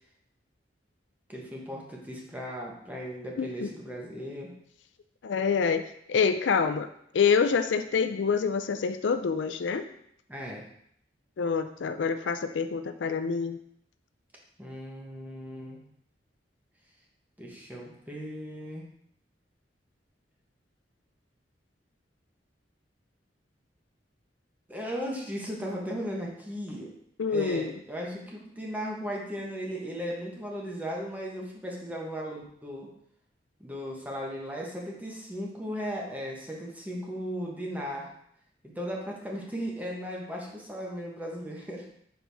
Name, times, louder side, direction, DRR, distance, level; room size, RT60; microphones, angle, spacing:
voice 1, 1.3-4.5 10.3-10.6 14.6-15.8 17.4-18.8 24.7-26.9 27.2-32.9 33.6-38.1 38.7-41.9, equal, 10° right, -2 dB, 1.2 m, -36 dB
voice 2, 3.4-3.7 5.2-5.8 6.1-6.9 7.1-9.8 11.4-13.6 27.2-27.7, left 5 dB, 80° left, 9 dB, 0.4 m, -26 dB
6.1 x 4.6 x 3.5 m, 0.71 s
head